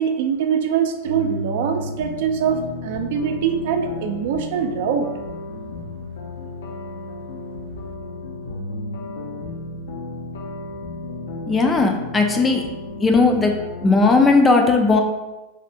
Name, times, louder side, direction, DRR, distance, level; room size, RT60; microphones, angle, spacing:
voice 1, 0.0-5.1, right 7 dB, 65° right, 6 dB, 0.3 m, -23 dB
sound 1, 1.0-14.4, left 2 dB, 85° left, 0.5 m, -33 dB
voice 2, 11.5-12.6 13.0-13.5 13.8-15.0, left 3 dB, 15° left, 3 dB, 0.3 m, -16 dB
3.4 x 2.1 x 2.6 m, 1.1 s
supercardioid pair, 130°, 0 cm